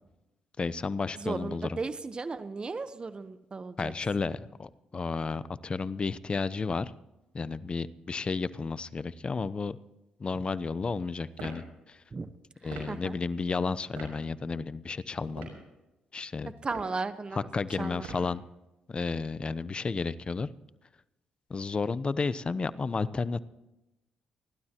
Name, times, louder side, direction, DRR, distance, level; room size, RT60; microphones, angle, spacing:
voice 1, 0.6-1.8 3.8-6.9 7.3-9.8 10.2-12.0 12.6-15.5 16.1-16.5 17.3-18.4 18.9-20.5 21.5-23.4, left 4 dB, 35° left, 16 dB, 0.8 m, -32 dB
voice 2, 1.2-3.9 12.1-12.3 12.6-13.2 16.4-17.5 17.8-18.1, right 4 dB, 35° right, 11 dB, 1.1 m, -36 dB
sound 1, 11.3-11.6 12.7-12.9 14.0-14.1 15.2-15.6 16.6-17.0 18.0-18.3, right 4 dB, 85° right, 6.2 m, -42 dB
29.0 x 12.0 x 3.0 m, 0.97 s
supercardioid pair, 60°, 3 cm